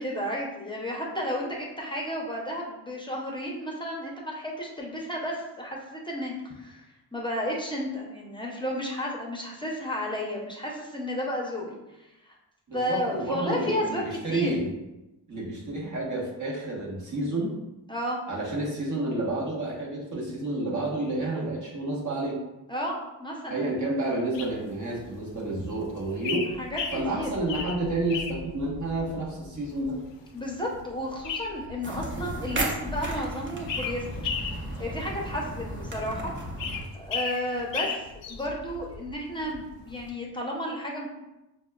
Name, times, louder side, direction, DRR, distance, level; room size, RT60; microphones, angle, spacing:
voice 1, 0.0-6.8 7.1-12.3 12.7-14.5 17.9-18.2 22.7-23.6 26.6-26.8 27.1-27.3 30.3-34.3 34.8-36.3 36.9-41.1, equal, 10° left, -2 dB, 0.7 m, -32 dB
voice 2, 12.7-14.7 15.3-17.5 18.3-22.4 23.5-26.4 26.9-29.9, right 2 dB, 45° right, -4 dB, 1.2 m, -30 dB
sound 1, 24.3-40.1, left 5 dB, 85° left, 0.6 m, -37 dB
sound 2, 31.8-36.8, right 1 dB, 25° right, 0.7 m, -34 dB
6.0 x 2.2 x 2.3 m, 0.97 s
cardioid pair, 95°, 43 cm